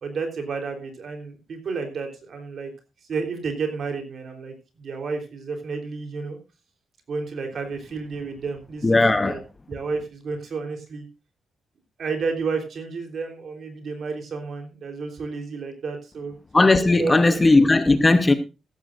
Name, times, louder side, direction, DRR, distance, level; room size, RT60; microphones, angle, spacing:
voice 1, 0.0-2.7 3.1-6.4 7.1-9.4 9.7-11.0 12.0-16.3 17.0-17.4, right 4 dB, 50° right, 3.5 m, -31 dB
voice 2, 8.8-9.4 16.5-18.3, left 2 dB, 15° left, 0.8 m, -17 dB
15.5 x 14.0 x 2.5 m
wide cardioid pair, 160°, 0 cm